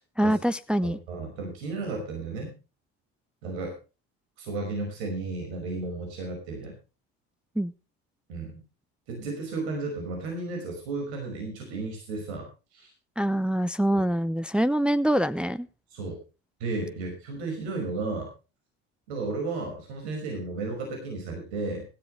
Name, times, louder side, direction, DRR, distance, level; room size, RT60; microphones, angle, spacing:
voice 1, 0.2-1.0 7.6-7.7 13.2-15.7, right 1 dB, 5° right, 0.6 m, -25 dB
voice 2, 0.8-2.5 3.4-3.7 4.4-6.7 8.3-8.6 9.1-12.5 12.7-12.9 13.9-14.0 15.9-16.2 16.6-18.3 19.1-21.9, right 3 dB, 90° right, 5.7 m, -33 dB
16.5 x 13.5 x 3.3 m
supercardioid pair, 80°, 31 cm